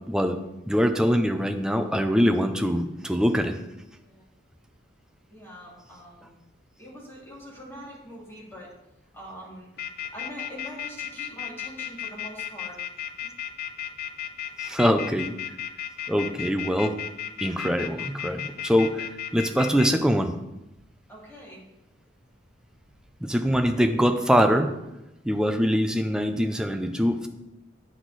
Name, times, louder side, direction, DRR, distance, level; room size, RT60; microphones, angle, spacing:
voice 1, 0.1-0.4 0.7-3.6 14.6-15.3 16.1-17.0 17.4-20.3 23.2-24.7 25.2-27.3, equal, 5° right, 6 dB, 0.5 m, -23 dB
voice 2, 3.9-4.3 5.3-6.4 6.8-8.7 9.1-9.7 10.1-12.8 21.1-21.6, equal, 10° left, -6 dB, 2.6 m, -43 dB
sound 1, 9.8-19.9, left 10 dB, 50° left, 0.6 m, -34 dB
8.2 x 6.2 x 4.0 m, 0.91 s
head